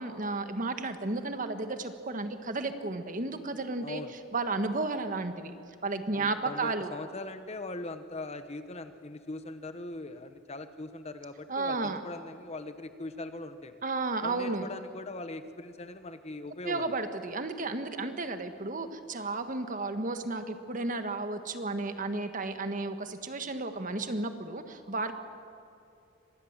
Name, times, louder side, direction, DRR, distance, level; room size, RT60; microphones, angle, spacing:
voice 1, 0.0-4.0 4.3-5.5 5.8-6.9 11.5-12.0 13.8-14.7 16.6-25.1, right 3 dB, 45° right, 8 dB, 1.5 m, -33 dB
voice 2, 3.8-4.1 6.1-13.8 14.2-16.9, left 2 dB, 35° left, 10 dB, 1.0 m, -41 dB
25.0 x 19.5 x 7.4 m, 2.8 s
head